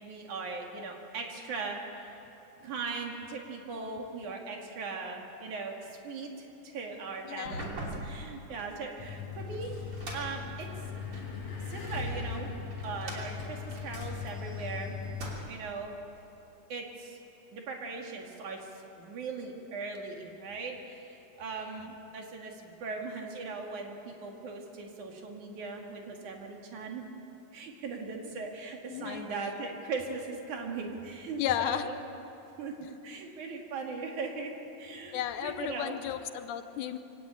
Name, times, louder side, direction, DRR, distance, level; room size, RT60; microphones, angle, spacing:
voice 1, 0.0-2.3 2.6-9.8 10.1-10.7 11.7-12.5 12.8-15.0 15.5-16.0 16.7-17.2 17.5-18.7 19.0-27.0 27.5-32.0 32.6-34.5 34.8-36.0, right 4 dB, 70° right, 1 dB, 3.7 m, -39 dB
voice 2, 7.3-7.7 21.6-21.9 28.9-29.3 31.4-31.9 35.1-37.0, left 11 dB, 80° left, 10 dB, 2.2 m, -34 dB
sound 1, 7.3-11.4 12.0-14.7 15.0-15.8, right 1 dB, 45° right, 3.8 m, -43 dB
sound 2, 9.0-15.4, left 5 dB, 50° left, 5.6 m, -39 dB
24.5 x 17.5 x 8.6 m, 2.9 s
omnidirectional pair, 3.7 m